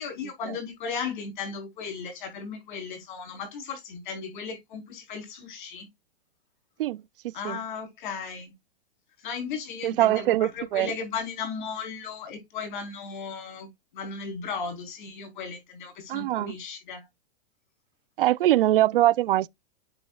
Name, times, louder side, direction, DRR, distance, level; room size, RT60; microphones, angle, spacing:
voice 1, 0.0-5.9 7.3-8.5 9.2-13.7 13.9-17.0, left 5 dB, 50° left, 4.2 m, -36 dB
voice 2, 9.8-10.9 16.1-16.5 18.2-19.5, right 14 dB, 65° right, 0.5 m, -23 dB
8.6 x 7.2 x 2.4 m
supercardioid pair, 165°, 30 cm